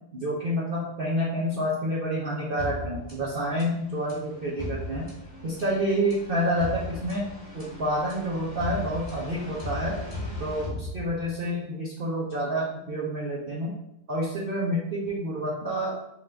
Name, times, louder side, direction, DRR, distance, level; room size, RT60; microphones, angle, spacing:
voice 1, 0.1-5.1 5.4-7.3 7.5-9.9 10.4-13.7 14.1-15.9, equal, 75° right, -5 dB, 0.5 m, -28 dB
sound 1, 2.6-11.5, left 1 dB, 30° left, 1.5 m, -38 dB
3.7 x 2.4 x 3.3 m, 0.84 s
omnidirectional pair, 1.8 m